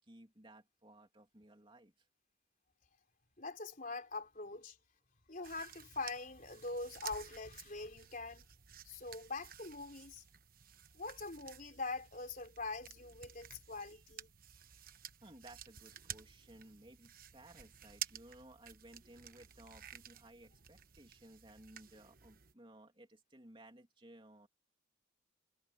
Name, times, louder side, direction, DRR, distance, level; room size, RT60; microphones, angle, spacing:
voice 1, 0.0-2.1 13.8-14.0 15.2-24.5, right 1 dB, 25° right, 3.0 m, -58 dB
voice 2, 3.4-4.8 5.3-8.4 8.8-10.2 10.9-14.3, left 3 dB, 45° left, 3.8 m, -43 dB
sound 1, 5.4-22.5, right 9 dB, 45° right, 1.2 m, -52 dB
head